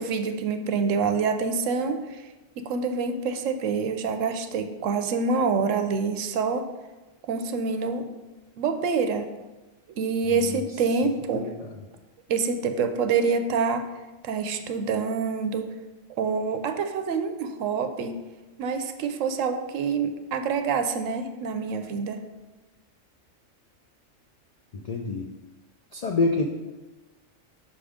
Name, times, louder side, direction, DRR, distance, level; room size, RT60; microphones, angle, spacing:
voice 1, 0.0-2.3 2.6-6.7 7.3-8.1 8.6-9.3 10.0-11.5 12.3-13.9 14.2-15.7 16.2-18.2 18.6-22.2, right 5 dB, 80° right, 7 dB, 1.0 m, -26 dB
voice 2, 11.3-11.7 24.7-25.3 25.9-26.4, left 3 dB, 75° left, 2 dB, 0.3 m, -27 dB
6.1 x 3.6 x 4.9 m, 1.1 s
omnidirectional pair, 1.3 m